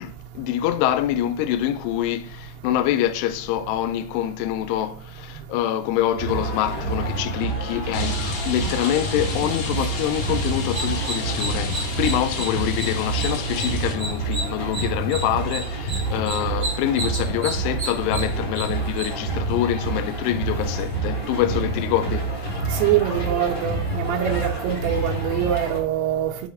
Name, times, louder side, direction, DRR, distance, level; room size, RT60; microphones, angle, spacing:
voice 1, 0.0-22.5 26.3-26.4, left 12 dB, 85° left, 2.6 m, -25 dB
sound 1, 6.2-25.8, right 3 dB, 45° left, 1.4 m, -28 dB
Rain, 7.9-13.9, left 4 dB, 65° left, 3.3 m, -33 dB
sound 2, 10.6-19.1, right 1 dB, 65° right, 0.6 m, -33 dB
voice 2, 22.7-26.3, right 10 dB, 80° right, 2.5 m, -24 dB
7.1 x 4.7 x 3.8 m
omnidirectional pair, 4.9 m